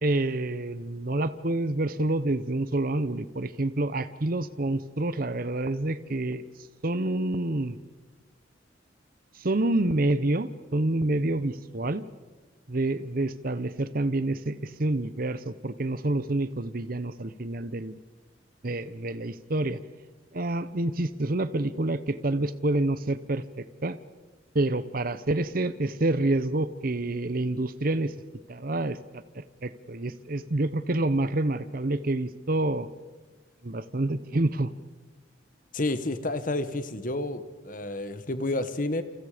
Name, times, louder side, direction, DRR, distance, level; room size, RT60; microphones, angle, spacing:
voice 1, 0.0-6.4 6.8-7.8 9.4-12.0 12.7-18.0 18.6-19.8 20.3-24.0 24.5-28.1 28.5-29.0 29.3-32.9 33.6-34.7, right 2 dB, 50° right, 13 dB, 0.9 m, -28 dB
voice 2, 35.7-39.0, left 2 dB, 45° left, 11 dB, 1.4 m, -30 dB
29.0 x 27.5 x 5.1 m, 1.3 s
head